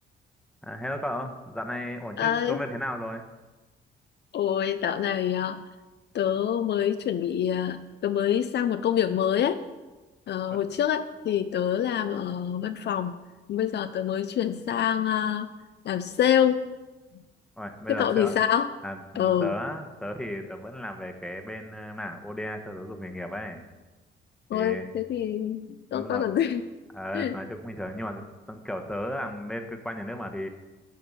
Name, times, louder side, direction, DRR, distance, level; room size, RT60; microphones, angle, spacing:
voice 1, 0.6-3.2 10.5-10.6 17.6-18.3 18.8-23.6 24.5-24.9 25.9-26.2 26.9-30.5, left 1 dB, 5° left, 6 dB, 1.1 m, -35 dB
voice 2, 2.2-2.6 4.3-5.6 6.1-9.6 10.3-13.2 13.5-15.5 15.8-16.6 17.9-18.7 19.1-19.6 24.5-26.6 27.1-27.4, left 9 dB, 60° left, 10 dB, 0.5 m, -26 dB
12.0 x 5.0 x 5.5 m, 1.2 s
cardioid pair, 90°, 20 cm